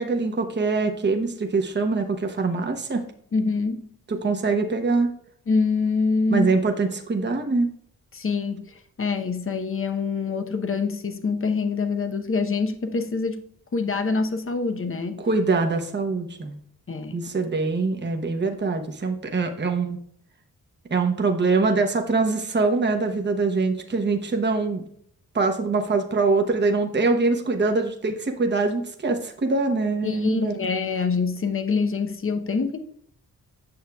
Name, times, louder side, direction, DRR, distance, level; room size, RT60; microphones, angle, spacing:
voice 1, 0.0-3.0 4.1-5.1 6.3-7.7 15.2-16.6 17.1-20.0 20.9-24.8 25.3-30.6, right 3 dB, 30° right, 1.0 m, -23 dB
voice 2, 3.3-3.9 5.5-6.5 8.1-13.4 13.7-15.2 16.9-17.2 30.0-32.8, left 4 dB, 35° left, 0.9 m, -25 dB
8.7 x 6.3 x 2.3 m
cardioid pair, 60°, 35 cm